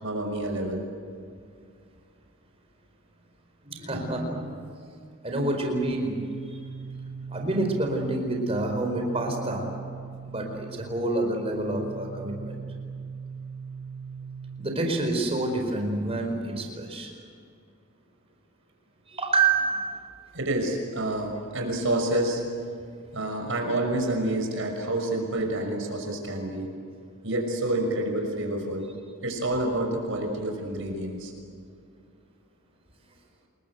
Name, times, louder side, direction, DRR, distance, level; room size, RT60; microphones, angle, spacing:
voice 1, 0.0-0.8 20.3-22.4 23.1-26.7 27.2-28.9 29.2-31.3, right 1 dB, 60° right, 2 dB, 6.0 m, -28 dB
voice 2, 3.6-4.8 5.2-6.1 6.4-6.6 7.3-9.7 10.2-12.6 14.6-17.1 19.1-20.1, right 2 dB, 25° right, 2 dB, 4.7 m, -28 dB
sound 1, 5.6-15.4, right 5 dB, 85° right, 2.5 m, -40 dB
28.5 x 22.0 x 8.1 m, 2.3 s
head